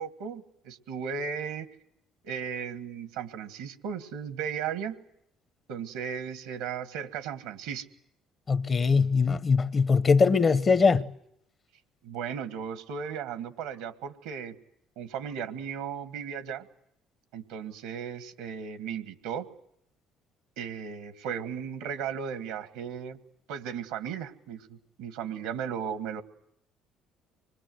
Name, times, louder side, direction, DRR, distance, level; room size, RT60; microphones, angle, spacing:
voice 1, 0.0-1.7 2.2-5.0 5.7-7.9 12.0-14.5 14.9-16.7 17.3-19.5 20.6-23.2 23.5-26.2, right 7 dB, 85° right, 1.6 m, -36 dB
voice 2, 8.5-11.1, left 5 dB, 40° left, 1.0 m, -22 dB
25.5 x 22.0 x 7.8 m
supercardioid pair, 75°, 0 cm